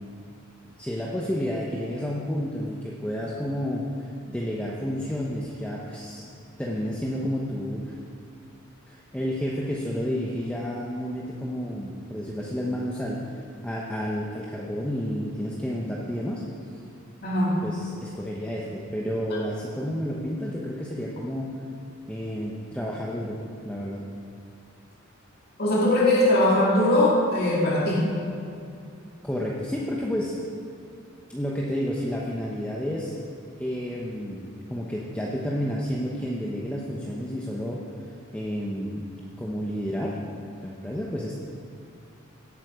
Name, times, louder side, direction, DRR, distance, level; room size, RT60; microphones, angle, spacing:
voice 1, 0.8-3.9 4.3-6.2 6.6-7.9 8.9-16.4 17.6-21.5 22.1-24.0 29.2-30.3 31.3-33.1 33.6-37.8 38.3-39.1 39.4-40.2 40.6-41.3, equal, 5° left, -4 dB, 0.9 m, -30 dB
voice 2, 17.2-17.6 25.6-28.1, left 1 dB, 50° left, -5 dB, 2.4 m, -21 dB
17.0 x 8.4 x 4.9 m, 2.5 s
head